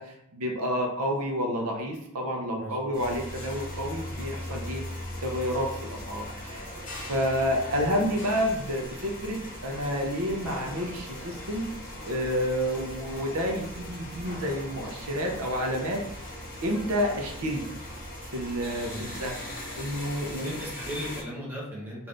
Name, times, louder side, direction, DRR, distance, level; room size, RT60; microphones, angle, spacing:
voice 1, 0.0-4.8 5.2-11.7 12.0-16.0 16.6-17.7 18.3-20.5, equal, 80° right, 1 dB, 0.7 m, -30 dB
voice 2, 2.6-3.0 18.8-19.1 20.3-22.1, equal, 10° right, -6 dB, 1.1 m, -37 dB
sound 1, 2.9-21.2, left 1 dB, 40° left, 1.1 m, -39 dB
3.8 x 2.6 x 3.3 m, 0.77 s
head